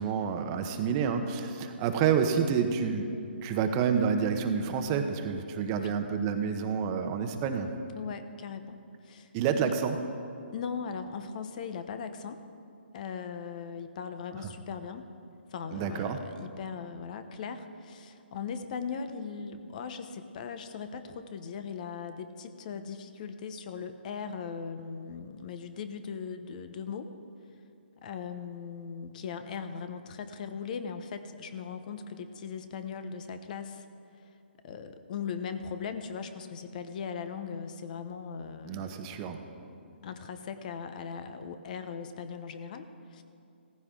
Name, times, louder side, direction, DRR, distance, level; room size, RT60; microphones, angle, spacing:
voice 1, 0.0-3.1 3.4-7.7 9.3-10.0 14.4-14.5 15.7-16.2 38.6-39.4, right 6 dB, 25° right, 6 dB, 1.0 m, -29 dB
voice 2, 8.0-8.8 9.0-9.7 10.5-12.4 12.9-15.1 15.5-27.1 28.0-33.9 34.6-39.2 39.6-43.2, left 6 dB, 45° left, 9 dB, 0.9 m, -39 dB
16.0 x 15.0 x 3.8 m, 2.5 s
hypercardioid pair, 145°, 6 cm